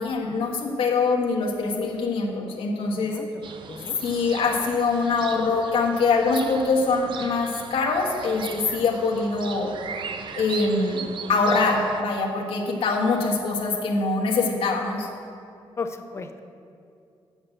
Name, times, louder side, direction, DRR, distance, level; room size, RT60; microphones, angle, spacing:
voice 1, 0.0-3.2 4.0-9.7 10.3-15.1, left 3 dB, 75° left, 0 dB, 1.3 m, -24 dB
voice 2, 2.9-3.3 3.7-4.1 15.8-16.4, left 4 dB, 30° left, 7 dB, 0.6 m, -35 dB
sound 1, 3.4-12.0, right 6 dB, 60° right, 0.5 m, -39 dB
8.0 x 7.4 x 6.5 m, 2.5 s
wide cardioid pair, 160°, 9 cm